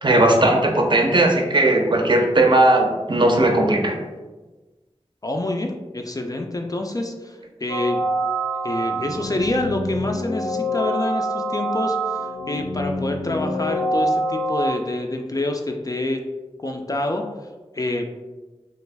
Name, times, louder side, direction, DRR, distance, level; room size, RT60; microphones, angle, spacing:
voice 1, 0.0-4.0, right 1 dB, 50° right, 3 dB, 0.5 m, -17 dB
voice 2, 5.2-8.1 8.6-16.2 16.6-17.2 17.7-18.1, left 2 dB, 35° left, 2 dB, 0.3 m, -27 dB
sound 1, 7.7-14.7, right 1 dB, 85° left, 0.6 m, -25 dB
3.1 x 2.5 x 3.3 m, 1.2 s
wide cardioid pair, 70°, 11 cm